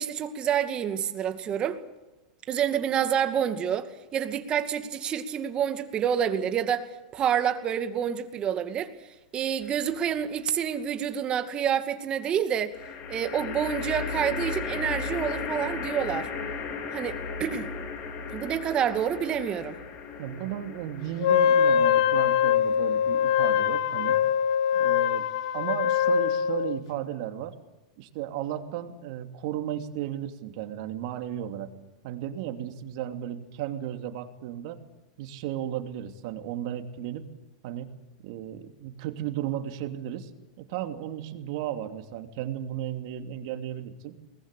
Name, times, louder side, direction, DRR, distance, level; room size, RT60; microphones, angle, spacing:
voice 1, 0.0-1.8 2.5-8.9 9.3-12.7 13.1-16.3 16.9-17.7 18.3-19.8, right 8 dB, 30° right, 2.3 m, -28 dB
sound 1, 9.6-10.3 12.7-24.1, left 5 dB, 45° left, 4.4 m, -36 dB
voice 2, 20.2-24.2 24.7-25.3 25.5-27.5 28.0-31.7 32.0-34.8 35.2-37.2 37.6-37.9 38.2-40.3 40.6-44.2, right 11 dB, 60° right, 2.8 m, -34 dB
Wind instrument woodwind instrument, 21.2-26.8, left 9 dB, 70° left, 1.4 m, -23 dB
23.0 x 20.0 x 8.5 m
hypercardioid pair, 125°, 3 cm